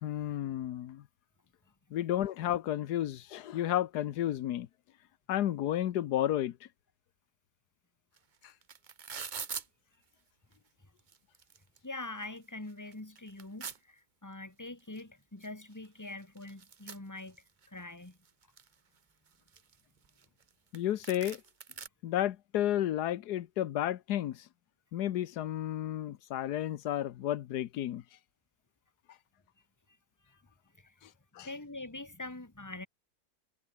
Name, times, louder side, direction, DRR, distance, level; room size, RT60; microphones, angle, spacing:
voice 1, 0.0-1.0 1.9-4.7 5.3-6.6 20.7-21.4 22.0-24.5 24.9-28.0 31.0-31.1 31.3-31.5, left 12 dB, 90° left, 1.4 m, -32 dB
sound 1, 8.2-8.3 8.4-9.7 10.5-10.6 11.0-11.8 12.2-12.3 12.7-13.8 15.0-15.1 15.4-15.5 15.7-17.7 18.1-18.7 19.3-20.5 20.7-20.8 21.0-21.9, right 6 dB, 35° right, 0.8 m, -43 dB
voice 2, 11.8-18.2 30.3-30.4 30.7-30.9 31.4-32.9, left 2 dB, 10° left, 2.1 m, -44 dB
omnidirectional pair, 1.7 m